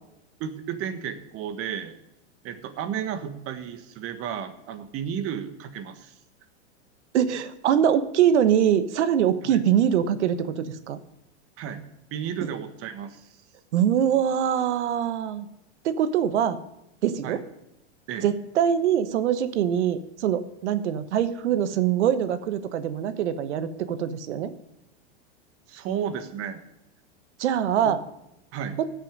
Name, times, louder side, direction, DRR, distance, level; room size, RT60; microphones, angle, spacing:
voice 1, 0.4-1.9 2.4-6.1 9.4-9.6 11.6-11.8 12.1-13.3 17.2-17.4 18.1-18.3 25.7-26.6 28.5-28.8, right 8 dB, 40° right, 10 dB, 1.5 m, -33 dB
voice 2, 7.1-11.0 12.4-12.5 13.7-15.5 15.8-16.6 17.0-17.4 18.2-24.5 27.4-28.0, right 9 dB, 80° right, 12 dB, 1.2 m, -23 dB
16.0 x 6.5 x 5.2 m, 0.88 s
supercardioid pair, 125°, 34 cm